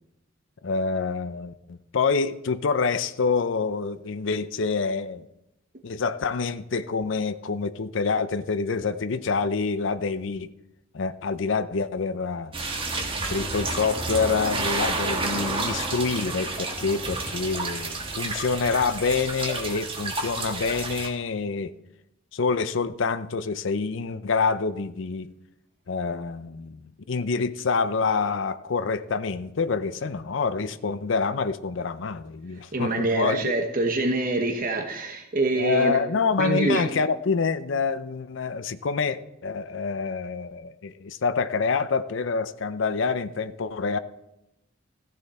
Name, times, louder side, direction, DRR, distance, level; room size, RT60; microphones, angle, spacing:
voice 1, 0.6-5.2 5.8-10.5 10.9-12.5 13.3-21.7 22.3-25.3 25.9-33.5 35.6-44.0, left 4 dB, 65° left, 0.6 m, -27 dB
sound 1, 12.5-21.1, right 3 dB, 25° right, 1.6 m, -30 dB
voice 2, 32.7-36.0 36.4-36.9, right 2 dB, 45° right, 1.1 m, -25 dB
15.0 x 10.0 x 4.3 m
head